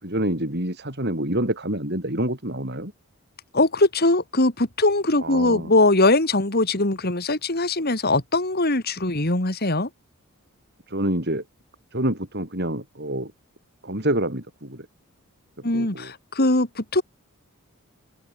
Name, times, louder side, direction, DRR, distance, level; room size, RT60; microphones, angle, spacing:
voice 1, 0.0-2.9 5.2-5.7 10.9-11.4 11.9-13.3 13.8-14.9 15.7-16.1, right 1 dB, 50° right, 6.6 m, -27 dB
voice 2, 3.5-9.9 15.6-17.0, left 2 dB, 45° left, 2.5 m, -21 dB
open air
head